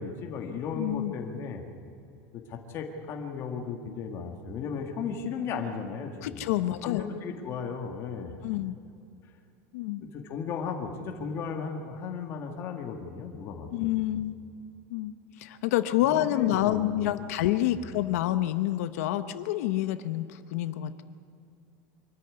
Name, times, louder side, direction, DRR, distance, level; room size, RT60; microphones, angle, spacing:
voice 1, 0.0-1.6 2.3-6.4 6.8-8.3 10.0-14.2 16.0-16.9 17.7-17.8, left 5 dB, 30° left, 3 dB, 1.8 m, -35 dB
voice 2, 0.7-1.1 6.2-7.1 8.4-8.8 9.7-10.0 13.7-14.4 14.9-21.0, left 13 dB, 75° left, 11 dB, 0.9 m, -28 dB
24.5 x 13.5 x 9.7 m, 2.5 s
supercardioid pair, 170°, 8 cm